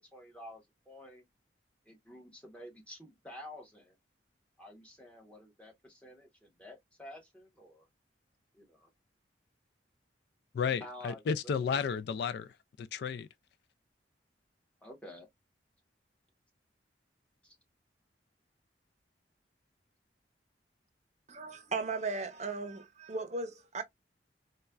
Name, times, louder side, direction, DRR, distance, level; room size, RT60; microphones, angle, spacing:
voice 1, 0.1-1.2 1.8-3.9 4.6-7.9 8.5-8.9 10.8-11.2 14.8-15.3 17.4-17.6, left 1 dB, 5° left, 1.0 m, -50 dB
voice 2, 10.5-13.3, left 6 dB, 65° left, 0.3 m, -33 dB
voice 3, 21.3-23.8, right 3 dB, 40° right, 0.7 m, -36 dB
4.1 x 2.2 x 2.3 m
head